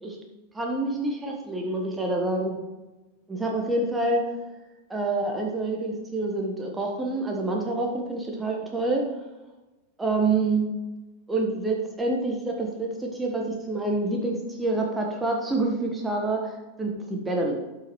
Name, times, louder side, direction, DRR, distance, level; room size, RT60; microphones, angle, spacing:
voice 1, 0.5-2.6 3.3-4.3 4.9-9.1 10.0-10.7 11.3-17.6, right 2 dB, 10° right, 0 dB, 1.2 m, -27 dB
13.0 x 5.8 x 3.1 m, 1.1 s
figure-of-eight pair, 90°, 0 cm